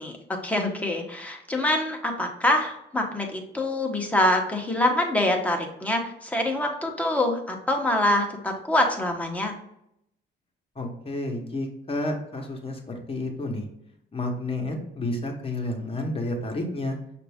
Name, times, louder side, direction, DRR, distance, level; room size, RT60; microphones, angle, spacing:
voice 1, 0.0-9.5, left 1 dB, 5° left, 1 dB, 1.0 m, -25 dB
voice 2, 10.7-13.7 14.1-17.0, left 1 dB, 30° left, 2 dB, 1.1 m, -30 dB
5.8 x 2.5 x 3.5 m, 0.78 s
cardioid pair, 90°, 20 cm